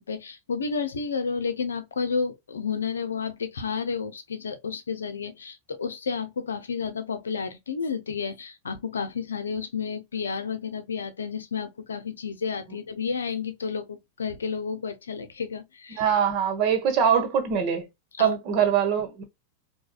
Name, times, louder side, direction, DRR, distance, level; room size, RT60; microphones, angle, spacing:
voice 1, 0.0-16.0 18.2-18.4, left 5 dB, 70° left, 0.7 m, -31 dB
voice 2, 15.9-17.9 18.2-19.2, right 8 dB, 40° right, 1.2 m, -23 dB
4.7 x 2.3 x 2.3 m
figure-of-eight pair, 90°, 0 cm